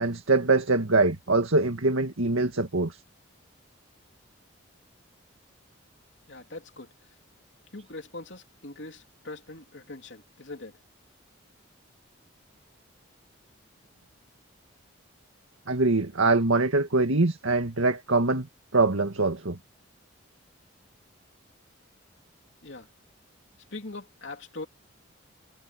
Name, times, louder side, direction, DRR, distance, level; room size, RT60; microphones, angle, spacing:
voice 1, 0.0-3.0 15.7-18.5 18.7-19.6, right 3 dB, 90° right, 2.0 m, -23 dB
voice 2, 6.3-7.1 7.7-10.8 22.6-22.9 23.7-24.7, left 2 dB, 60° left, 3.4 m, -42 dB
head